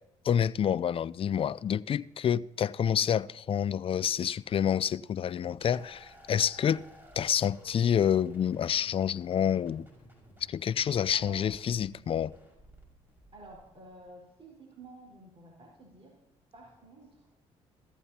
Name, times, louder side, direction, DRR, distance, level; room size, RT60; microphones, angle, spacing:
voice 1, 0.2-6.8 7.2-9.9 10.5-12.3, left 9 dB, 40° left, 0.4 m, -28 dB
sound 1, 5.6-14.1, equal, 15° right, 5.4 m, -55 dB
voice 2, 11.1-11.5 11.9-12.0 13.3-16.2 16.5-17.3, right 2 dB, 45° right, 4.6 m, -51 dB
17.0 x 14.0 x 2.9 m
supercardioid pair, 70°, 14 cm